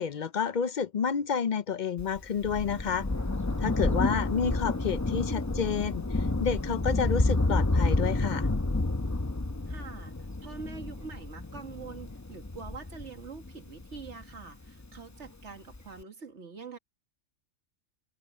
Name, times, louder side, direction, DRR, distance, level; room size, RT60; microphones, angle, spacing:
voice 1, 0.0-3.1 3.6-8.5, left 6 dB, 50° left, 0.6 m, -30 dB
Thunder, 2.0-14.9 15.7-15.8, left 2 dB, 15° left, 0.7 m, -30 dB
voice 2, 3.8-4.3 9.7-16.8, right 5 dB, 65° right, 2.2 m, -45 dB
omnidirectional pair, 1.3 m